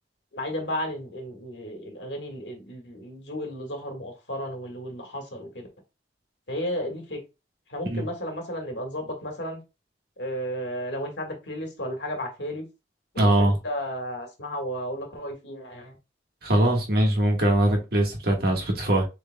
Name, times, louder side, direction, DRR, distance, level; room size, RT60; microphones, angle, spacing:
voice 1, 0.3-5.7 6.5-7.2 7.7-9.6 10.2-12.7 13.1-16.0, equal, 70° left, 1.7 m, -33 dB
voice 2, 13.2-13.6 16.4-19.1, right 1 dB, 60° right, 1.5 m, -22 dB
7.1 x 3.4 x 2.2 m
head